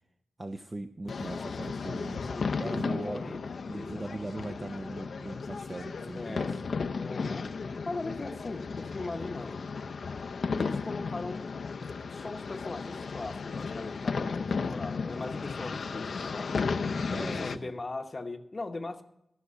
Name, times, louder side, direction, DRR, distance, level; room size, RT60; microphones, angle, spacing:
voice 1, 0.4-2.2 2.6-3.4 3.7-6.6 17.1-17.7, right 2 dB, 20° right, 7 dB, 0.5 m, -39 dB
sound 1, 1.1-17.6, left 4 dB, 55° left, 0.6 m, -34 dB
voice 2, 1.9-3.4 3.7-4.3 6.1-6.6 6.9-9.6 10.6-11.5 12.1-16.5 17.1-19.0, left 2 dB, 25° left, 7 dB, 0.9 m, -40 dB
12.5 x 6.7 x 8.2 m, 0.82 s
wide cardioid pair, 170°, 0 cm